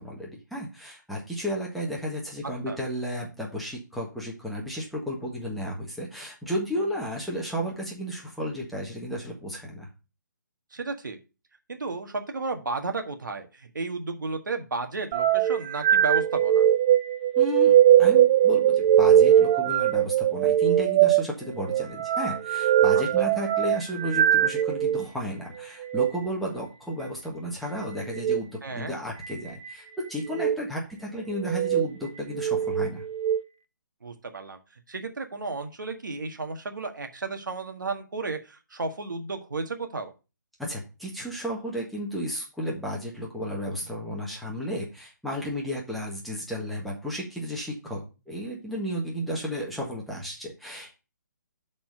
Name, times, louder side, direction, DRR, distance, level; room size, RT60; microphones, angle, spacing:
voice 1, 0.0-9.9 17.4-33.0 40.6-50.9, equal, ahead, -4 dB, 1.5 m, -33 dB
voice 2, 10.7-11.2 11.7-16.7 23.2-23.3 28.6-28.9 34.0-34.6 34.9-40.1, right 3 dB, 80° right, 6 dB, 1.7 m, -33 dB
sound 1, 15.1-25.1 25.8-26.1 28.1-28.4 29.2-29.7 30.3-30.6 31.4-31.9 32.3-33.4, right 11 dB, 20° right, 0.4 m, -21 dB
7.6 x 4.3 x 6.4 m, 0.31 s
hypercardioid pair, 155°, 10 cm